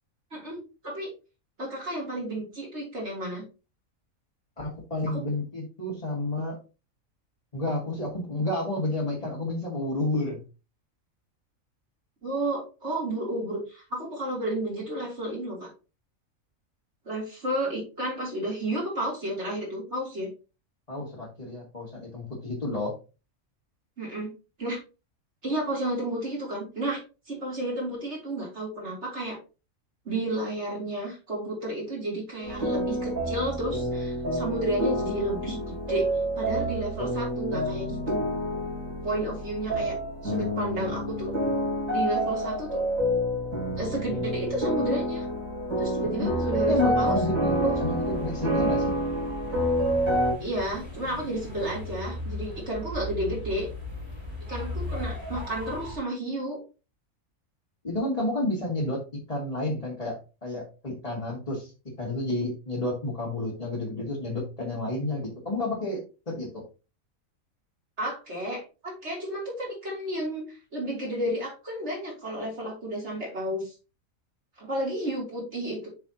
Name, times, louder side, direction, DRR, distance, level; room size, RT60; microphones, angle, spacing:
voice 1, 0.3-1.1 1.6-3.4 5.1-5.2 12.2-15.7 17.1-20.3 24.0-24.3 24.6-24.8 25.4-27.0 27.3-29.4 30.1-36.0 36.4-38.2 39.0-40.0 40.2-41.3 41.9-42.8 43.8-45.3 45.8-47.1 47.6-47.7 50.4-53.7 54.5-56.6 68.0-73.7 74.6-75.9, right 1 dB, 55° right, -3 dB, 3.6 m, -32 dB
voice 2, 4.6-6.6 7.5-10.4 20.9-22.9 46.2-46.3 46.7-48.9 57.8-59.0 59.3-61.7 62.0-66.0 66.3-66.6, left 2 dB, 25° left, -4 dB, 2.0 m, -30 dB
sound 1, 32.4-50.3, equal, 70° right, 3.3 m, -28 dB
sound 2, 47.5-56.0, left 1 dB, 20° right, 2.7 m, -38 dB
7.1 x 5.8 x 2.9 m, 0.31 s
omnidirectional pair, 1.4 m